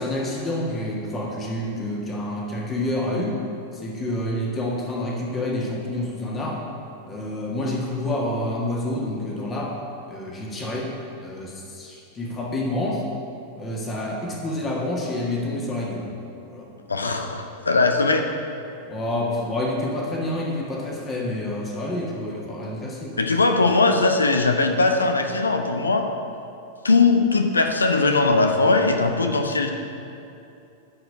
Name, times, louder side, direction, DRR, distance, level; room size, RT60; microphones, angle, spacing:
voice 1, 0.0-3.4 3.7-6.6 7.1-9.8 10.1-10.9 11.2-13.0 13.6-16.1 16.5-16.7 18.8-23.2, left 1 dB, 20° left, -2 dB, 1.8 m, -28 dB
voice 2, 16.9-18.3 23.2-26.1 26.8-29.7, left 3 dB, 75° left, 5 dB, 0.8 m, -20 dB
12.0 x 4.9 x 8.3 m, 2.7 s
figure-of-eight pair, 90°, 0 cm